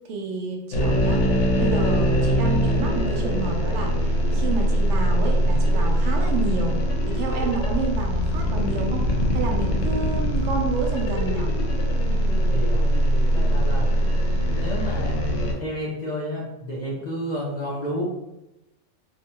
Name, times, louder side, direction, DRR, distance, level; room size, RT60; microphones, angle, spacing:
voice 1, 0.0-1.3 1.5-6.8 7.1-11.5, right 3 dB, 75° right, 1 dB, 0.9 m, -30 dB
sound 1, 0.7-15.5, equal, 85° left, 0.9 m, -22 dB
voice 2, 12.5-12.8 13.3-13.9 14.5-18.0, equal, 55° left, -4 dB, 0.5 m, -31 dB
2.7 x 2.2 x 2.8 m, 0.92 s
omnidirectional pair, 1.3 m